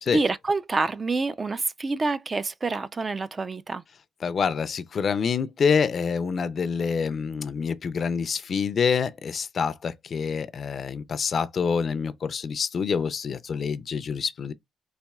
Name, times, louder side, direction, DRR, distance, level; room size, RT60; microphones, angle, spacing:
voice 1, 0.1-3.8, right 3 dB, 30° right, 0.4 m, -27 dB
voice 2, 4.2-14.5, left 6 dB, 50° left, 0.4 m, -26 dB
4.1 x 2.6 x 2.3 m
cardioid pair, 90°, 0 cm